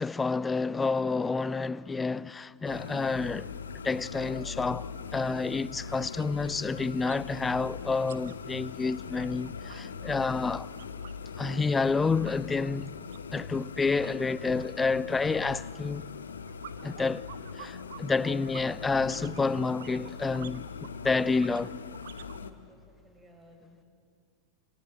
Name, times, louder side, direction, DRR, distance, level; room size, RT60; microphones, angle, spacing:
voice 1, 0.0-3.5 3.8-10.7 11.4-13.0 13.3-16.1 16.8-17.3 17.6-20.7 21.0-21.7, left 4 dB, 15° left, 0.6 m, -29 dB
sound 1, 2.6-22.5, left 5 dB, 70° left, 1.5 m, -41 dB
sound 2, 5.0-5.1 5.4-5.6 5.9-7.3 7.5-11.3 11.6-22.4, right 10 dB, 60° right, 1.1 m, -52 dB
voice 2, 22.3-23.9, equal, 10° right, 6.6 m, -57 dB
28.0 x 27.0 x 7.9 m
figure-of-eight pair, 90°, 0 cm